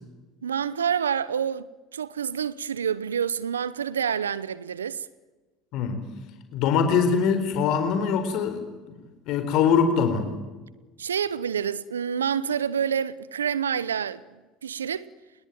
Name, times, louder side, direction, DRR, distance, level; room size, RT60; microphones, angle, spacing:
voice 1, 0.4-1.7 1.9-5.1 11.0-14.2 14.6-15.1, right 8 dB, 90° right, 0.8 m, -27 dB
voice 2, 6.5-8.6 9.3-10.3, left 6 dB, 60° left, 4.1 m, -22 dB
27.5 x 21.0 x 9.4 m
hypercardioid pair, 70°, 0 cm